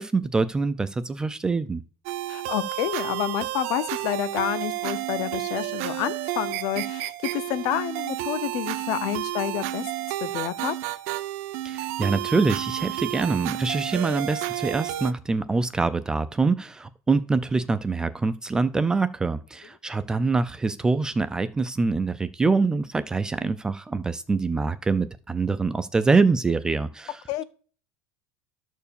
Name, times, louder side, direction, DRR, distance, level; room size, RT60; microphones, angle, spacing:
voice 1, 0.0-1.8 11.6-27.2, right 4 dB, 10° right, 0.4 m, -25 dB
sound 1, 2.1-15.1, right 15 dB, 65° right, 0.8 m, -31 dB
voice 2, 2.3-9.9 10.2-10.7 27.3-27.4, left 13 dB, 50° left, 0.7 m, -29 dB
12.0 x 4.5 x 6.9 m
cardioid pair, 175°, 8 cm